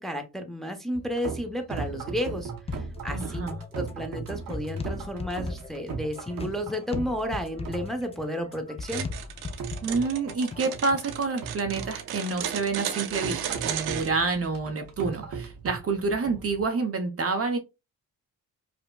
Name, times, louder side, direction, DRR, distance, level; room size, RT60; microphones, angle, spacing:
voice 1, 0.0-9.1, equal, ahead, 0.7 m, -32 dB
sound 1, 0.9-16.6, right 5 dB, 65° right, 0.9 m, -39 dB
sound 2, 2.7-11.1, left 4 dB, 20° left, 0.3 m, -38 dB
voice 2, 3.1-3.6 9.8-17.6, right 4 dB, 40° right, 0.6 m, -28 dB
sound 3, 8.8-14.1, right 10 dB, 80° right, 0.6 m, -34 dB
5.0 x 2.1 x 2.2 m
cardioid pair, 80°, 37 cm